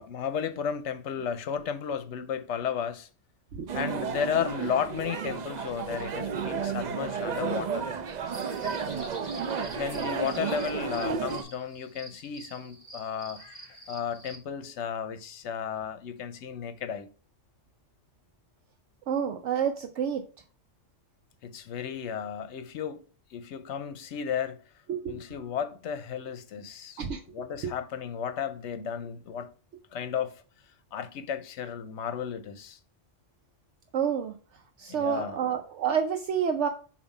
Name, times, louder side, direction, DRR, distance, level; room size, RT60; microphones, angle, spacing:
voice 1, 0.0-3.1 3.7-7.9 8.6-9.1 9.7-13.4 13.9-17.1 21.4-23.0 23.3-24.6 25.1-27.0 27.3-29.5 29.9-30.4 30.9-32.8 34.9-35.4, left 8 dB, 70° left, 0.9 m, -33 dB
sound 1, 3.7-11.4, right 6 dB, 50° right, 0.5 m, -32 dB
sound 2, 8.2-14.4, right 1 dB, 35° right, 2.7 m, -47 dB
voice 2, 19.1-20.2 24.9-25.2 27.0-27.2 27.6-27.7 33.9-34.3 34.8-36.7, right 8 dB, 70° right, 0.9 m, -29 dB
7.0 x 2.7 x 5.3 m
omnidirectional pair, 1.3 m